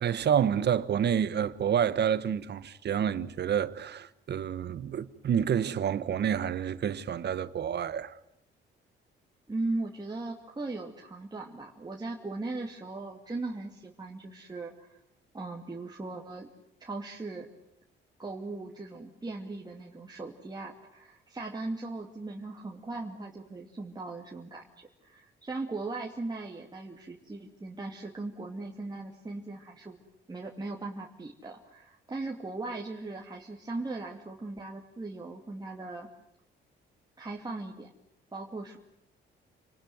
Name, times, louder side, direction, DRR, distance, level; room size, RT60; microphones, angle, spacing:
voice 1, 0.0-8.2, right 8 dB, 55° right, 1.4 m, -28 dB
voice 2, 9.5-15.0 15.3-16.5 16.8-17.5 18.2-30.0 30.3-36.1 37.2-37.9 38.3-38.8, right 2 dB, 20° right, 2.6 m, -38 dB
28.5 x 19.5 x 9.4 m
cardioid pair, 90°, 20 cm